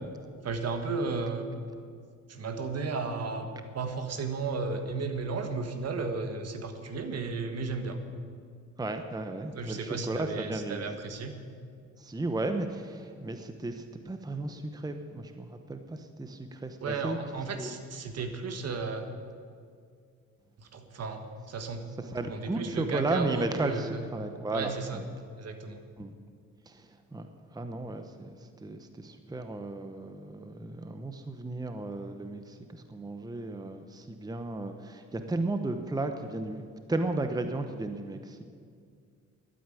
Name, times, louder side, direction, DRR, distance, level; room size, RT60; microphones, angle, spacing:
voice 1, 0.4-1.5 2.3-8.0 9.5-11.4 16.8-19.1 20.6-21.9 22.2-24.0 24.5-25.0 25.4-25.8, right 4 dB, 55° right, 7 dB, 1.6 m, -34 dB
voice 2, 8.8-10.8 12.0-17.2 17.5-17.7 22.1-25.0 26.0-26.1 26.7-36.6 36.9-38.4, right 2 dB, 15° right, 7 dB, 0.8 m, -34 dB
12.5 x 9.1 x 9.1 m, 2.2 s
cardioid pair, 90°, 30 cm